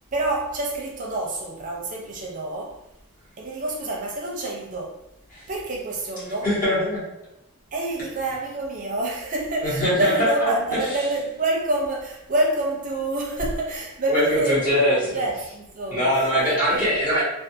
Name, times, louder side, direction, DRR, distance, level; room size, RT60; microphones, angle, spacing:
voice 1, 0.1-2.8 3.4-5.0 5.5-6.5 7.7-14.9 15.1-17.0, right 2 dB, 35° right, 0.5 m, -27 dB
voice 2, 6.4-7.0 9.6-10.5 10.9-11.0 14.1-15.0 15.9-17.2, equal, 35° left, 1.1 m, -22 dB
2.4 x 2.3 x 2.6 m
head